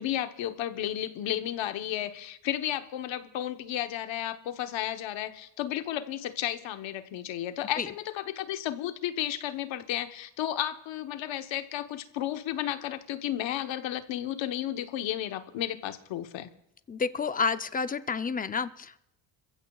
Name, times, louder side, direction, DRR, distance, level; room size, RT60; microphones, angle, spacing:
voice 1, 0.0-16.5, left 12 dB, 80° left, 8 dB, 1.2 m, -33 dB
voice 2, 16.9-19.0, left 5 dB, 20° left, 11 dB, 0.6 m, -30 dB
27.0 x 15.0 x 2.4 m, 0.78 s
cardioid pair, 115°, 45 cm